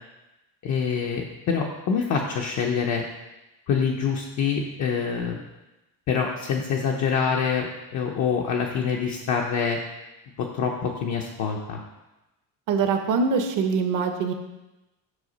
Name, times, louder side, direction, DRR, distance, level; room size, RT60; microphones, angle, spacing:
voice 1, 0.6-3.0 3.7-5.4 6.1-9.8 10.4-11.8, left 6 dB, 45° left, -1 dB, 0.7 m, -26 dB
voice 2, 12.7-14.3, right 5 dB, 50° right, 6 dB, 0.8 m, -23 dB
8.0 x 5.7 x 4.0 m, 1.0 s
cardioid pair, 175°, 40 cm